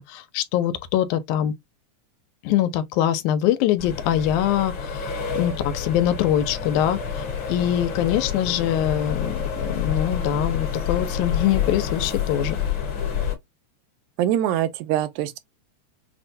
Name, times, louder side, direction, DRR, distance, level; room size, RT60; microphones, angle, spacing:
voice 1, 0.0-1.5 2.4-12.6, left 11 dB, 85° left, 2.1 m, -23 dB
sound 1, 3.8-13.4, left 7 dB, 50° left, 1.6 m, -28 dB
voice 2, 14.2-15.4, right 12 dB, 80° right, 2.0 m, -23 dB
6.2 x 2.2 x 2.6 m
omnidirectional pair, 3.4 m